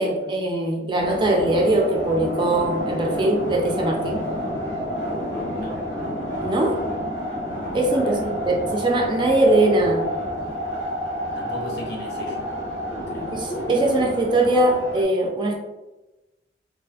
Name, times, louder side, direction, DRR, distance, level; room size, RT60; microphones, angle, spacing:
voice 1, 0.0-4.3 6.4-6.8 7.7-10.0 13.3-15.6, right 1 dB, 25° right, 1 dB, 0.4 m, -21 dB
sound 1, 1.0-15.0, equal, 85° left, 1.0 m, -29 dB
voice 2, 7.9-8.3 11.3-12.5 13.1-13.4, left 2 dB, 65° left, -1 dB, 0.6 m, -37 dB
2.5 x 2.4 x 2.3 m, 1.0 s
head